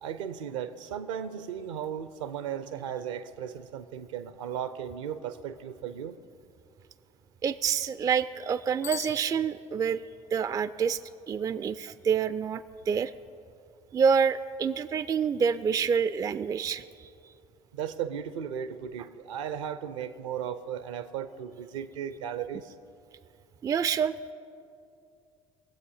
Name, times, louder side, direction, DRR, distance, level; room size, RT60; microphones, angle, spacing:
voice 1, 0.0-6.2 17.7-22.7, right 8 dB, 65° right, 14 dB, 0.6 m, -36 dB
voice 2, 7.4-10.0 10.3-11.0 11.3-13.1 13.9-17.1 23.6-24.1, right 6 dB, 20° right, 16 dB, 0.3 m, -27 dB
Bicycle bell, 8.8-10.1, left 13 dB, 70° left, 1.1 m, -42 dB
21.0 x 7.9 x 5.6 m, 2.5 s
figure-of-eight pair, 55°, 17 cm